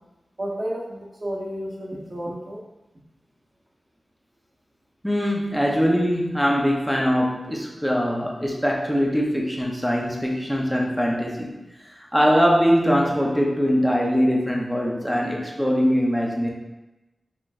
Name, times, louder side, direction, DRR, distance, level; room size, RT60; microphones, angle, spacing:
voice 1, 0.4-2.6, equal, 45° right, -5 dB, 1.1 m, -31 dB
voice 2, 5.0-11.5 11.9-16.5, equal, ahead, -2 dB, 0.7 m, -22 dB
5.8 x 3.0 x 2.5 m, 1.0 s
wide cardioid pair, 110°, 0 cm